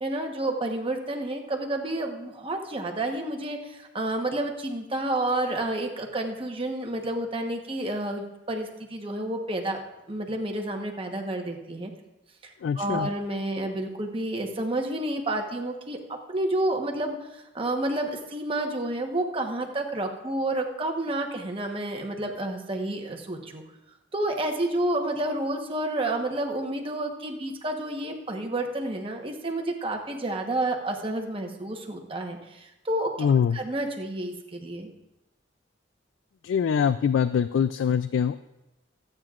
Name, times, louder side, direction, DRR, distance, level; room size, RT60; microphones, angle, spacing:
voice 1, 0.0-9.8 10.1-11.9 12.4-16.0 16.3-23.6 24.1-34.9, right 1 dB, 30° right, 3 dB, 1.1 m, -30 dB
voice 2, 12.6-13.1 33.2-33.6 36.4-38.4, left 7 dB, 80° left, 13 dB, 0.3 m, -23 dB
23.5 x 9.0 x 2.5 m, 0.96 s
head